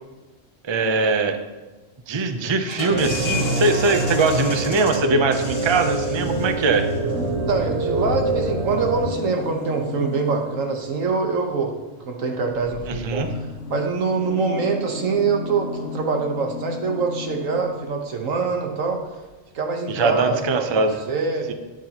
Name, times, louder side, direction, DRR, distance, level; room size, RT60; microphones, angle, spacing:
voice 1, 0.6-1.4 2.1-6.8 12.9-13.3 19.9-21.0 21.5-21.6, right 3 dB, 30° right, 7 dB, 0.5 m, -21 dB
sound 1, 2.6-8.1, left 3 dB, 50° left, 1.8 m, -33 dB
sound 2, 2.9-9.1, right 2 dB, 60° right, 1.1 m, -25 dB
sound 3, 6.0-10.9 12.5-18.0 18.9-19.0 19.2-19.3, left 5 dB, 65° left, 0.9 m, -35 dB
voice 2, 7.1-11.7 12.0-19.0 19.5-21.5, right 4 dB, 90° right, 3 dB, 1.6 m, -24 dB
12.0 x 9.2 x 2.9 m, 1.2 s
omnidirectional pair, 1.3 m